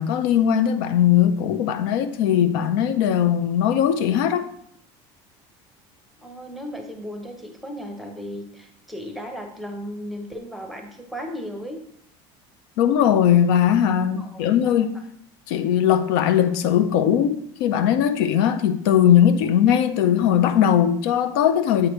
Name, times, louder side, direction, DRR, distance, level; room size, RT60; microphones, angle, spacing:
voice 1, 0.0-4.5 12.8-14.9 15.5-21.9, left 9 dB, 90° left, 0.5 m, -19 dB
voice 2, 6.2-11.8 14.1-14.7, equal, ahead, 0.6 m, -35 dB
7.6 x 4.9 x 3.0 m
cardioid pair, 170°, 12 cm